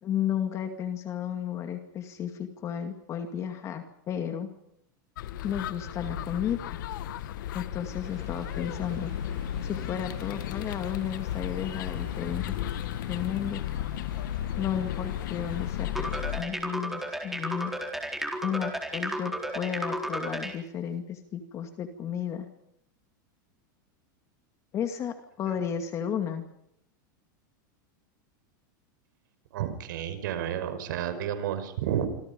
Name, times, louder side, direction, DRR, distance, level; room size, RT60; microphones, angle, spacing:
voice 1, 0.0-4.5 5.4-6.8 7.5-9.1 9.6-12.4 13.1-13.6 14.6-16.1 16.4-17.7 18.4-22.5 24.7-26.5, left 9 dB, 25° left, 7 dB, 2.4 m, -33 dB
sound 1, 5.2-16.4, left 11 dB, 70° left, 1.7 m, -34 dB
sound 2, 8.0-15.9, right 8 dB, 40° right, 6.0 m, -53 dB
sound 3, 15.9-20.6, right 1 dB, 5° right, 4.1 m, -33 dB
voice 2, 29.5-32.1, right 10 dB, 70° right, 10 dB, 5.6 m, -31 dB
26.5 x 26.5 x 5.4 m, 0.75 s
supercardioid pair, 155°, 11 cm